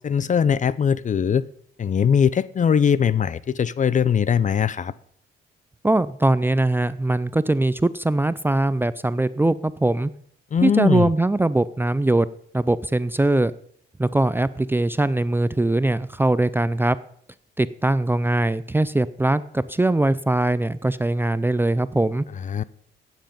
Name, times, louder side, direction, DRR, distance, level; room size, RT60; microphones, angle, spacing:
voice 1, 0.0-1.4 1.8-4.9 10.5-11.1 22.4-22.6, left 7 dB, 40° left, 19 dB, 0.6 m, -20 dB
voice 2, 5.8-10.1 10.6-12.3 12.5-13.5 14.0-17.0 17.6-22.2, right 2 dB, 10° right, 16 dB, 0.5 m, -21 dB
15.0 x 9.2 x 5.3 m, 0.63 s
cardioid pair, 90°, 20 cm